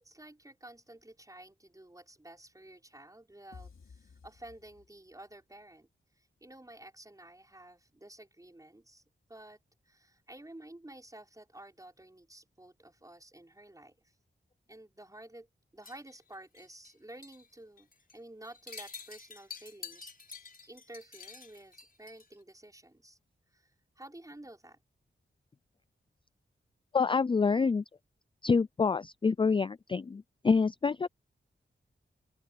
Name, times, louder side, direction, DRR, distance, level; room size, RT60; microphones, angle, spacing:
voice 1, 0.0-5.9 6.2-9.0 9.3-9.6 9.9-14.0 14.7-15.5 15.7-17.9 18.1-23.2 23.5-24.8, right 1 dB, 15° right, 5.7 m, -52 dB
sound 1, 3.5-5.3, left 5 dB, 75° left, 4.7 m, -54 dB
sound 2, 15.8-16.9 17.2-17.5 17.8-18.1 18.4-22.4, left 5 dB, 45° left, 5.9 m, -48 dB
voice 2, 26.9-27.8 28.4-31.1, left 5 dB, 25° left, 0.4 m, -27 dB
open air
wide cardioid pair, 75°, 20 cm